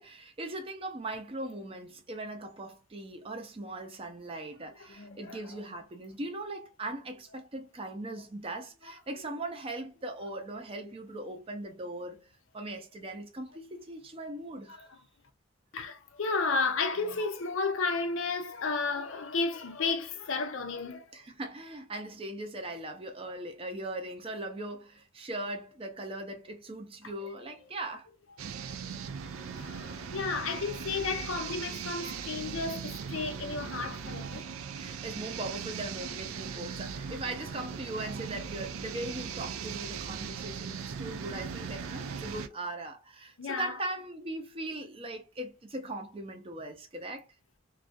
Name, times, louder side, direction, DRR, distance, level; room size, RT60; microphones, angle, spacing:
voice 1, 0.0-14.8 21.1-28.1 34.8-47.3, right 2 dB, 25° right, 0.5 m, -39 dB
voice 2, 4.9-5.4 14.7-14.9 15.7-21.1 29.3-34.5 43.4-43.7, left 4 dB, 70° left, 0.5 m, -33 dB
sound 1, 28.4-42.5, right 6 dB, 85° right, 0.4 m, -39 dB
2.3 x 2.2 x 2.5 m
head